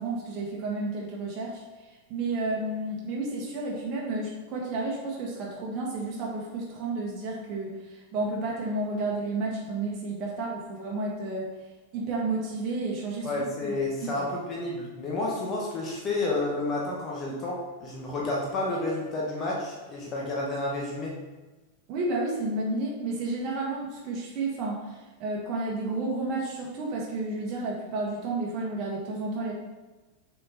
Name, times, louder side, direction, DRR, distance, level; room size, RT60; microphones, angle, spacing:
voice 1, 0.0-1.6 2.1-11.5 11.9-13.4 14.0-14.2 21.9-29.5, right 2 dB, 40° right, -3 dB, 1.7 m, -31 dB
voice 2, 13.2-21.1, left 2 dB, 30° left, -3 dB, 1.7 m, -30 dB
7.2 x 4.8 x 4.4 m, 1.2 s
figure-of-eight pair, 90°, 0 cm